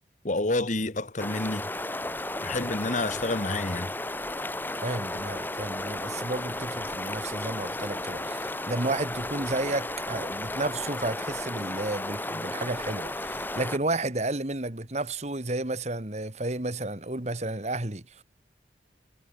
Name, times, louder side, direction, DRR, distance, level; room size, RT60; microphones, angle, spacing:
voice 1, 0.2-1.7 2.4-3.9, left 2 dB, 45° left, 1.4 m, -29 dB
sound 1, 1.2-13.8, left 1 dB, 10° left, 2.7 m, -34 dB
voice 2, 4.8-18.2, right 2 dB, 40° right, 1.9 m, -32 dB
head